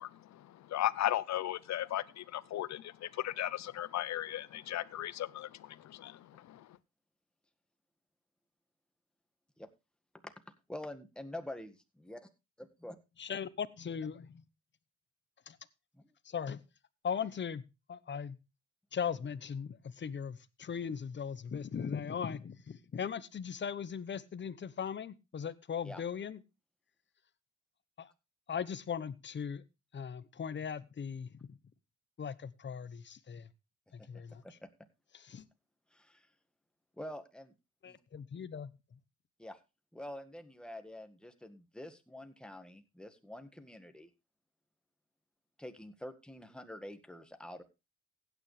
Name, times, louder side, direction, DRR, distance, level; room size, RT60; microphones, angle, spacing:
voice 1, 0.0-6.8, left 13 dB, 65° left, 0.8 m, -36 dB
voice 2, 10.7-12.3 12.6-12.9 15.9-16.1 25.8-26.0 34.0-34.1 34.4-34.7 35.9-36.3 37.0-37.5 37.8-38.0 39.4-39.6 39.9-44.1 45.6-47.6, left 1 dB, 5° left, 1.8 m, -46 dB
voice 3, 13.2-14.4 15.5-15.6 16.2-16.6 17.0-17.6 17.9-18.4 18.9-26.4 28.0-28.1 28.5-29.6 29.9-31.6 32.2-33.5 33.9-34.4 35.1-35.4 37.8-38.7, left 7 dB, 40° left, 1.0 m, -39 dB
15.5 x 9.3 x 3.3 m
cardioid pair, 90°, 30 cm